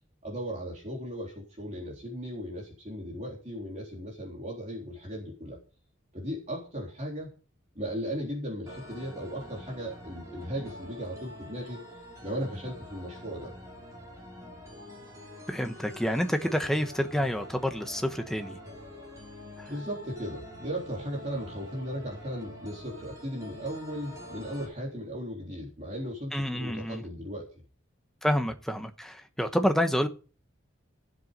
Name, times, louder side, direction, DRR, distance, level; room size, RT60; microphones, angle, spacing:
voice 1, 0.2-5.6 6.1-7.3 7.8-13.5 19.7-27.5, equal, 35° right, -3 dB, 3.8 m, -37 dB
sound 1, 8.7-24.7, equal, 15° right, 6.0 m, -46 dB
voice 2, 15.5-18.6 19.6-19.7 26.3-27.0 28.2-30.1, equal, ahead, 6 dB, 1.1 m, -28 dB
15.5 x 7.9 x 5.4 m, 0.37 s
head